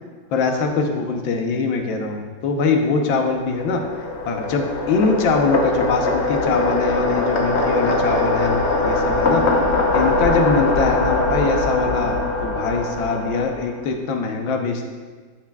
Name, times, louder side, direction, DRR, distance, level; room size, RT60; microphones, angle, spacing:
voice 1, 0.3-3.8 4.3-9.4 9.9-12.2 12.4-14.9, left 4 dB, 75° left, 3 dB, 1.6 m, -22 dB
sound 1, 3.1-13.8, left 2 dB, 50° left, 0.8 m, -22 dB
13.0 x 5.9 x 2.3 m, 1.5 s
omnidirectional pair, 2.1 m